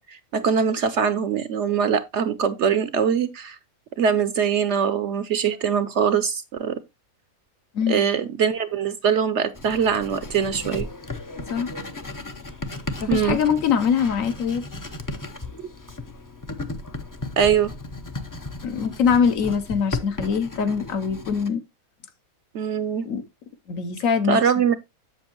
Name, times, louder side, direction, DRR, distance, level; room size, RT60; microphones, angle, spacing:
voice 1, 0.0-3.6 4.0-6.8 7.9-10.9 13.1-13.4 17.4-17.7 22.5-23.1 24.3-24.7, right 7 dB, 65° right, 0.8 m, -22 dB
Writing, 9.5-21.5, left 2 dB, 30° left, 0.3 m, -35 dB
voice 2, 13.0-14.6 18.6-21.6 23.0-23.2 23.7-24.4, left 6 dB, 65° left, 1.2 m, -23 dB
7.8 x 7.2 x 2.9 m
omnidirectional pair, 1.5 m